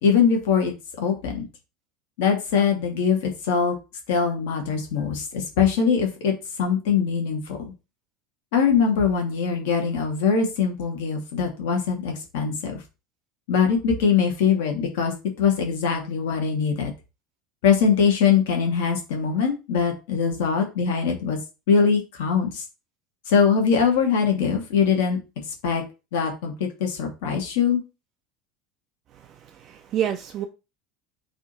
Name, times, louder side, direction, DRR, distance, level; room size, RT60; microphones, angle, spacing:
voice 1, 0.0-1.4 2.2-3.8 4.1-6.3 6.6-7.6 8.5-12.8 13.5-16.9 17.6-21.4 21.7-22.6 23.3-25.2 25.6-25.8 26.1-27.8, left 6 dB, 60° left, 1.0 m, -22 dB
voice 2, 29.1-30.5, right 10 dB, 40° right, 0.4 m, -29 dB
4.8 x 2.7 x 3.9 m
figure-of-eight pair, 70°, 0 cm